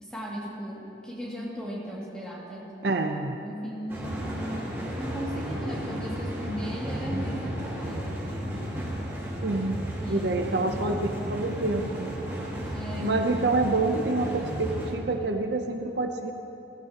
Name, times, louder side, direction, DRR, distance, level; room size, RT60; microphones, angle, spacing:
voice 1, 0.0-2.7 3.4-4.5 5.0-8.5 10.0-11.0 12.7-13.2, equal, 5° left, -6 dB, 2.3 m, -37 dB
voice 2, 2.8-3.3 7.1-7.2 9.4-9.8 10.1-11.0 11.3-12.1 13.0-16.3, right 3 dB, 65° right, 5 dB, 0.7 m, -27 dB
sound 1, 3.9-14.9, equal, 15° right, 1.8 m, -33 dB
17.5 x 15.5 x 2.9 m, 2.9 s
head